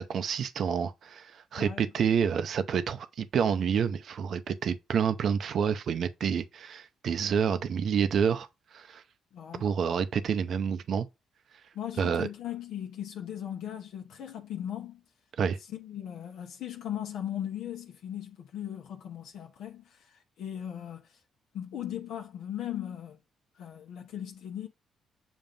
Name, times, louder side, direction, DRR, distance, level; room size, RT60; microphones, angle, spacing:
voice 1, 0.0-9.0 9.6-11.1 12.0-12.3 15.4-15.6, right 7 dB, 60° right, 0.6 m, -28 dB
voice 2, 9.3-9.7 11.7-15.0 15.7-21.2 21.5-23.2 23.5-24.7, left 10 dB, 80° left, 0.9 m, -38 dB
7.2 x 2.5 x 5.2 m
cardioid pair, 90°, 0 cm